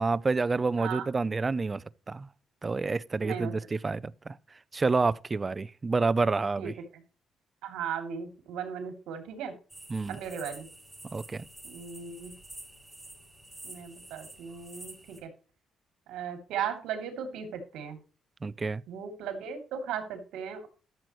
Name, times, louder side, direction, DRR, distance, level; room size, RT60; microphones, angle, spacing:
voice 1, 0.0-1.8 2.1-2.3 2.6-4.1 4.7-6.7 9.9-10.2 11.1-11.4 18.4-18.8, right 4 dB, 30° right, 0.5 m, -28 dB
voice 2, 3.2-3.5 6.6-7.0 7.6-9.5 10.1-10.7 11.6-12.3 13.6-15.3 16.1-18.0 18.9-20.7, right 7 dB, 90° right, 2.8 m, -37 dB
sound 1, 9.7-15.2, right 1 dB, 10° right, 5.6 m, -48 dB
13.5 x 7.7 x 3.1 m
cardioid pair, 90°, 0 cm